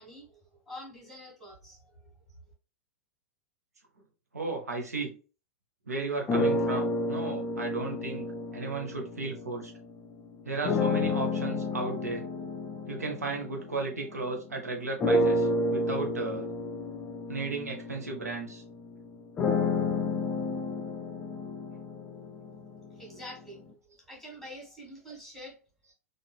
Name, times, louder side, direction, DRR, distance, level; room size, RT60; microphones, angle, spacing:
voice 1, 0.0-2.1 22.9-23.6 23.9-25.6, equal, ahead, -2 dB, 1.5 m, -46 dB
voice 2, 4.3-5.1 5.9-8.3 8.5-9.7 10.5-12.2 12.9-16.5 17.3-18.6, right 3 dB, 75° right, 2 dB, 0.8 m, -34 dB
sound 1, 6.3-9.8 10.6-14.4 15.0-23.0, left 2 dB, 20° left, 0.4 m, -30 dB
3.8 x 2.4 x 2.2 m, 0.34 s
figure-of-eight pair, 95°, 8 cm